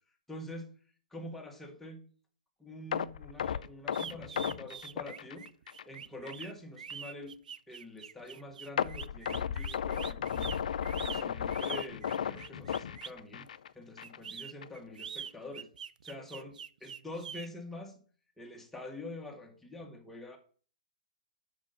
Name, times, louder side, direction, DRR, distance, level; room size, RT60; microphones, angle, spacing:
voice 1, 0.3-0.7 1.1-2.0 2.6-5.5 5.8-7.4 7.7-10.6 11.0-13.5 13.7-15.7 16.0-18.0 18.4-20.4, left 1 dB, 5° left, 1 dB, 1.5 m, -46 dB
sound 1, 2.9-6.0 6.3-6.4 6.9-7.0 8.8-13.7 14.0-14.2 14.6-14.7, left 8 dB, 70° left, 0.4 m, -34 dB
sound 2, 3.9-13.2 14.0-17.5, right 7 dB, 80° right, 0.3 m, -44 dB
6.1 x 5.3 x 5.6 m, 0.43 s
hypercardioid pair, 120°, 4 cm